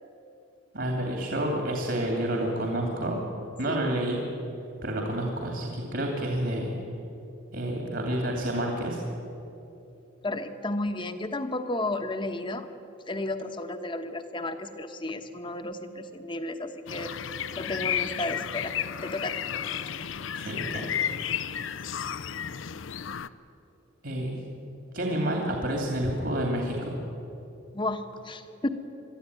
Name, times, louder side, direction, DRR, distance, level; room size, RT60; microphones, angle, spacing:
voice 1, 0.7-3.2 3.6-4.2 4.8-6.7 7.5-9.0 20.3-20.9 24.0-24.4 24.9-27.0, right 1 dB, 60° right, 1 dB, 2.8 m, -29 dB
voice 2, 10.2-12.7 13.1-18.7 19.0-19.4 20.7-21.1 27.7-28.7, left 2 dB, 25° left, 8 dB, 1.0 m, -33 dB
sound 1, 16.9-23.3, left 9 dB, 75° left, 0.6 m, -32 dB
22.0 x 13.5 x 9.5 m, 2.9 s
head